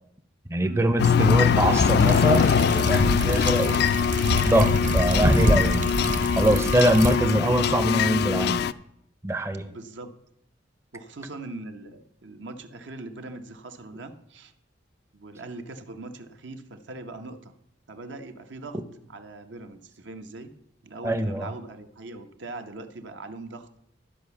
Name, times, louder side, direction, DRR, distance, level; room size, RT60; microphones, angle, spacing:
voice 1, 0.5-3.9 4.4-5.8 6.3-8.6 9.2-9.7 21.0-21.5, right 1 dB, 15° right, 8 dB, 0.5 m, -23 dB
sound 1, 1.0-8.7, left 7 dB, 60° left, 0.3 m, -22 dB
sound 2, 1.9-7.1, right 1 dB, 45° right, 0.8 m, -26 dB
voice 2, 9.7-10.1 10.9-14.5 15.1-17.6 17.9-18.8 19.1-20.5 20.8-23.7, right 2 dB, 75° right, 7 dB, 0.8 m, -41 dB
12.0 x 5.0 x 6.9 m, 0.77 s
head